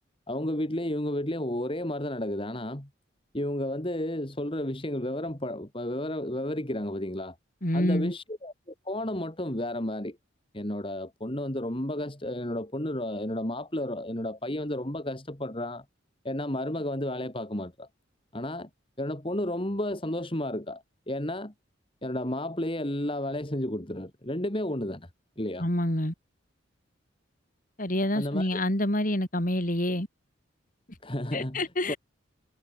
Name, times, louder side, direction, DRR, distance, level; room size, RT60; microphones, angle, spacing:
voice 1, 0.3-2.9 3.3-7.4 7.7-10.2 10.5-15.8 16.2-17.9 18.3-18.7 19.0-21.5 22.0-25.1 25.4-25.7 28.1-28.6 31.0-31.9, left 1 dB, 25° left, 2.4 m, -32 dB
voice 2, 7.6-8.1 25.6-26.1 27.8-30.1 31.3-32.0, left 1 dB, 40° left, 4.3 m, -27 dB
head